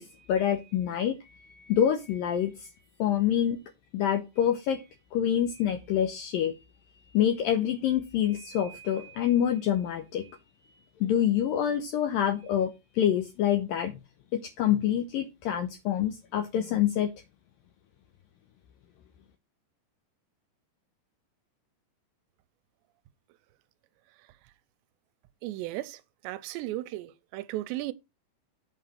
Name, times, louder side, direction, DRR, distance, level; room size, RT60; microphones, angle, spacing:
voice 1, 0.0-2.7 3.0-3.6 3.9-4.8 5.1-6.5 7.1-10.3 11.0-13.9 14.4-17.1, left 10 dB, 75° left, 2.2 m, -26 dB
voice 2, 25.4-26.0 26.2-27.9, right 16 dB, 90° right, 2.9 m, -35 dB
8.2 x 5.0 x 7.3 m
omnidirectional pair, 4.9 m